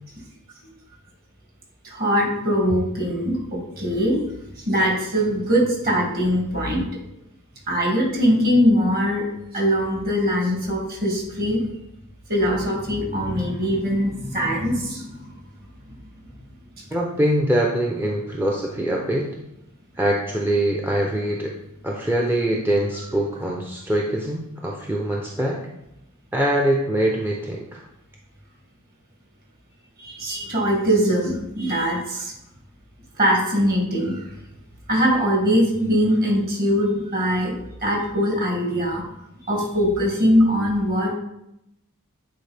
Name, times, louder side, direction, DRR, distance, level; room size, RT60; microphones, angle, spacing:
voice 1, 1.8-4.2 4.6-6.8 7.7-9.2 9.5-11.6 12.3-15.3 15.9-16.0 16.8-16.9 30.0-32.3 33.2-34.3 34.9-37.5 37.8-39.0 39.5-41.2, equal, 45° right, -2 dB, 2.3 m, -21 dB
voice 2, 16.9-19.3 20.0-21.5 21.8-25.6 26.3-27.8, right 1 dB, 10° right, -2 dB, 0.6 m, -23 dB
9.2 x 4.4 x 3.4 m, 0.84 s
head